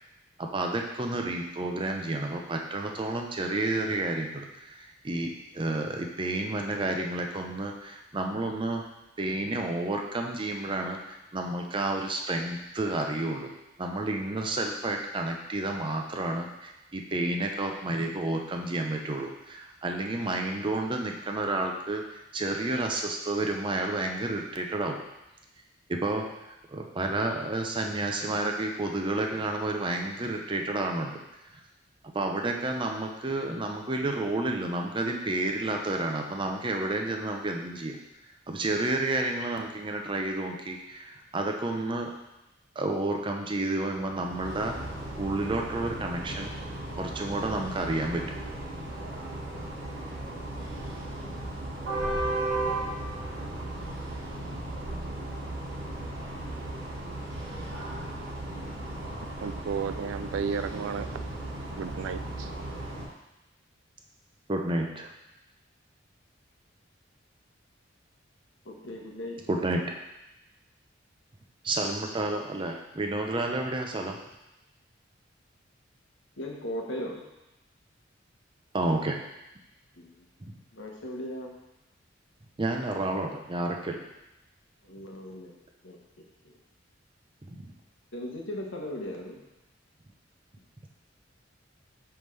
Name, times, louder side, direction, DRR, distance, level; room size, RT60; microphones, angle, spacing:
voice 1, 0.4-8.8 9.2-13.5 13.8-25.0 25.9-31.2 32.1-38.0 38.5-42.1 42.8-44.8 45.2-46.5 46.9-48.4 64.5-65.1 69.5-70.0 71.6-74.2 78.7-79.2 82.6-84.0 87.5-87.7, right 2 dB, 25° right, 2 dB, 0.6 m, -30 dB
sound 1, 44.0-63.1, right 1 dB, 70° right, 1.4 m, -36 dB
voice 2, 59.4-61.2 61.8-62.5, right 6 dB, 85° right, 12 dB, 0.3 m, -33 dB
voice 3, 68.6-69.4 76.4-77.3 80.0-80.3 80.7-81.5 84.8-85.5 85.8-86.6 88.1-89.4, left 1 dB, 75° left, 0 dB, 1.0 m, -38 dB
5.8 x 5.3 x 3.2 m, 0.93 s
head